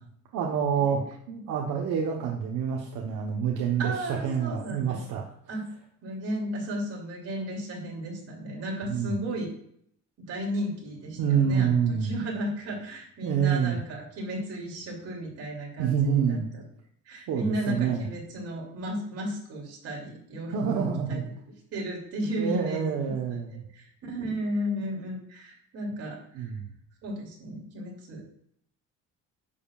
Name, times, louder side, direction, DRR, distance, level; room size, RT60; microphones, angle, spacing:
voice 1, 0.3-5.2 8.8-9.1 11.2-12.1 13.2-13.8 15.8-16.5 17.3-18.1 20.5-21.3 22.4-23.6 26.3-26.6, right 7 dB, 70° right, 0 dB, 1.2 m, -27 dB
voice 2, 3.8-5.0 5.5-5.7 6.0-9.5 10.3-16.6 17.1-21.2 21.7-23.4 23.7-26.5 27.0-28.3, equal, 50° right, -2 dB, 2.9 m, -34 dB
11.0 x 6.9 x 2.5 m, 0.68 s
cardioid pair, 165°, 32 cm